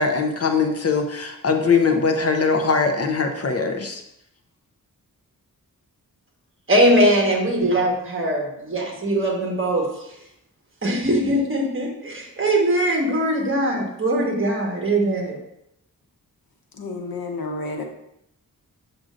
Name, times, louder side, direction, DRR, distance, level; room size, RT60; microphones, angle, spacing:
voice 1, 0.0-4.0, left 4 dB, 45° left, 4 dB, 0.7 m, -21 dB
voice 2, 6.7-8.4 8.7-9.9 10.8-15.4, right 1 dB, 35° right, 0 dB, 1.4 m, -21 dB
voice 3, 16.8-17.8, left 3 dB, 90° left, 2 dB, 1.1 m, -30 dB
7.4 x 6.5 x 2.5 m, 0.79 s
wide cardioid pair, 140°, 34 cm